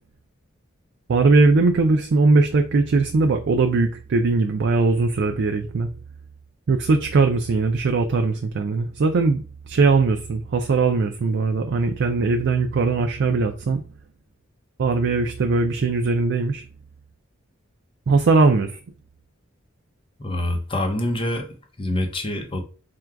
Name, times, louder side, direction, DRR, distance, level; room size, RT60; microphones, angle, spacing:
voice 1, 1.1-5.9 6.7-13.8 14.8-16.6 18.1-18.8, right 3 dB, 60° right, 0.4 m, -20 dB
voice 2, 20.2-22.6, left 1 dB, 25° left, 0.7 m, -26 dB
3.6 x 2.3 x 4.5 m
head